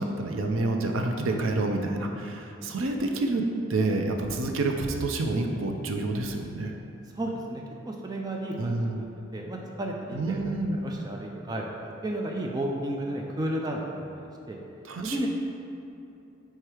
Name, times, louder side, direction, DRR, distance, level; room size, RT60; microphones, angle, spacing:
voice 1, 0.0-6.7 8.6-9.0 10.1-10.8 14.9-15.2, right 2 dB, 85° right, 3 dB, 0.6 m, -28 dB
voice 2, 7.2-9.1 9.3-10.4 10.7-14.6 15.0-15.3, right 1 dB, 20° right, 0 dB, 0.4 m, -33 dB
4.9 x 4.5 x 4.5 m, 2.8 s
head